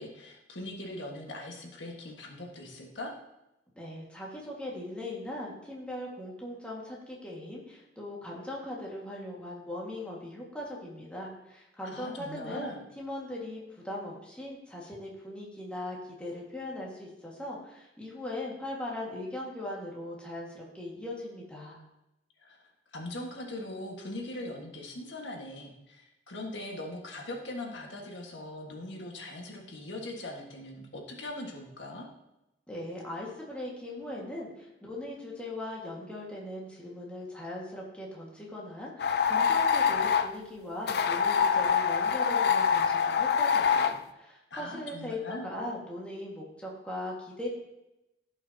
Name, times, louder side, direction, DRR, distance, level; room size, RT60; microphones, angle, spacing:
voice 1, 0.0-3.1 11.9-12.8 22.4-22.6 22.9-32.1 44.5-45.5, left 1 dB, 90° left, 0 dB, 1.6 m, -40 dB
voice 2, 3.8-21.8 32.7-47.5, left 1 dB, 5° left, -4 dB, 1.8 m, -39 dB
sound 1, 39.0-40.3 40.9-44.0, left 6 dB, 60° left, 0.5 m, -25 dB
15.0 x 5.7 x 2.8 m, 0.92 s
head